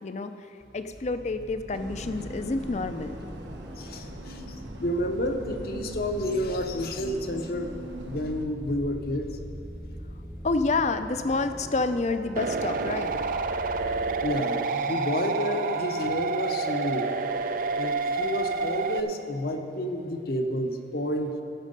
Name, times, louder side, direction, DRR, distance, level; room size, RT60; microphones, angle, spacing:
sound 1, 0.6-14.3, equal, 15° right, 0.7 m, -43 dB
voice 1, 0.7-3.2 10.4-13.1, left 3 dB, 40° left, 10 dB, 0.5 m, -28 dB
sound 2, 1.7-8.5, equal, 90° right, 1.0 m, -41 dB
voice 2, 3.8-7.7 8.0-9.3 14.2-17.1 17.8-21.3, left 1 dB, 55° left, 5 dB, 0.8 m, -30 dB
sound 3, 12.4-19.0, right 4 dB, 50° right, 0.4 m, -28 dB
16.0 x 6.4 x 5.3 m, 2.9 s
head